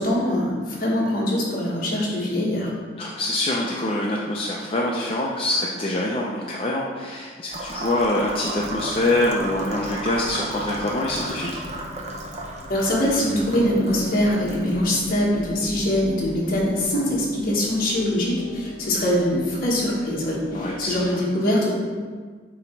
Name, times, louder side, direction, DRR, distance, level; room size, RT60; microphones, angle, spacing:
voice 1, 0.0-2.7 12.7-21.7, left 1 dB, 50° left, -5 dB, 1.4 m, -23 dB
voice 2, 3.0-11.5 20.5-21.2, left 1 dB, 30° left, -4 dB, 0.5 m, -25 dB
sound 1, 7.5-17.3, right 2 dB, 35° right, 0.7 m, -36 dB
sound 2, 8.6-21.1, left 2 dB, 80° left, 0.9 m, -40 dB
7.3 x 3.0 x 4.5 m, 1.5 s
head